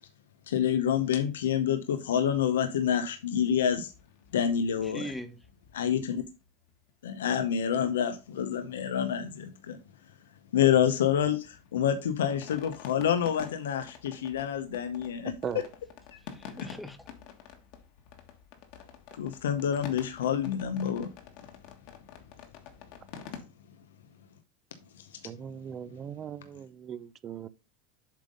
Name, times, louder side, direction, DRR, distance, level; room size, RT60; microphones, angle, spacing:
voice 1, 0.5-3.9 4.3-5.1 5.7-6.2 7.0-9.8 10.5-15.3 16.1-16.2 19.2-21.1 25.0-25.1, left 9 dB, 85° left, 0.7 m, -27 dB
sound 1, 3.5-8.0 8.2-8.3 8.5-8.8 9.0-10.0 10.4-23.4, left 8 dB, 60° left, 1.5 m, -49 dB
voice 2, 4.8-5.4 16.2-17.1, equal, 5° left, 1.1 m, -40 dB
voice 3, 25.2-27.5, right 8 dB, 35° right, 0.6 m, -39 dB
7.4 x 3.7 x 5.1 m
hypercardioid pair, 100°, 0 cm